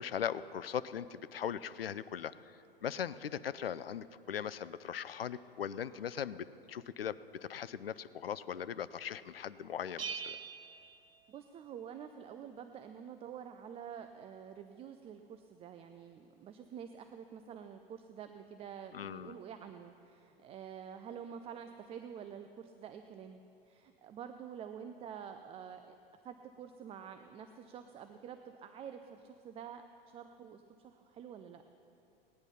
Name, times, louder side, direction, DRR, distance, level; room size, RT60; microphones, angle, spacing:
voice 1, 0.0-2.3 2.8-10.4 18.9-19.4, left 8 dB, 80° left, 16 dB, 0.5 m, -39 dB
Bell, 10.0-11.8, right 6 dB, 80° right, 0.9 m, -44 dB
voice 2, 11.3-23.4 23.7-25.9 26.2-31.6, right 8 dB, 20° right, 8 dB, 0.5 m, -48 dB
18.0 x 10.5 x 5.7 m, 2.7 s
figure-of-eight pair, 90°, 29 cm